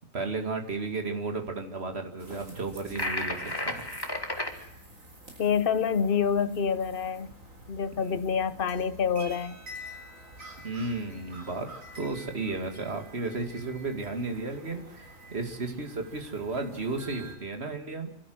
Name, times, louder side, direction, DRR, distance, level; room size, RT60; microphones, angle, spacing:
voice 1, 0.1-3.8 8.0-8.2 10.6-11.7 12.0-18.1, right 3 dB, 50° right, 2.6 m, -33 dB
sound 1, 2.2-17.4, right 1 dB, 85° right, 4.5 m, -48 dB
sound 2, 3.0-4.5, left 1 dB, 15° left, 2.0 m, -32 dB
voice 2, 5.4-7.3 7.7-9.6, left 7 dB, 45° left, 1.1 m, -27 dB
Percussion, 9.2-13.8, equal, 5° right, 6.5 m, -60 dB
26.0 x 13.0 x 7.8 m
omnidirectional pair, 1.3 m